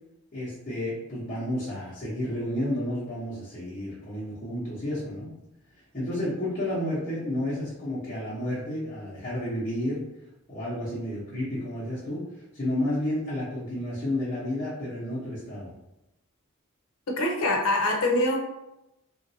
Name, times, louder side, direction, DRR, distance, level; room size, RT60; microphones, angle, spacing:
voice 1, 0.3-5.3 5.9-10.0 10.5-12.3 12.5-15.7, left 1 dB, 30° left, -13 dB, 0.9 m, -31 dB
voice 2, 17.1-18.4, left 1 dB, 75° left, 2 dB, 0.6 m, -24 dB
3.0 x 2.6 x 2.7 m, 0.92 s
head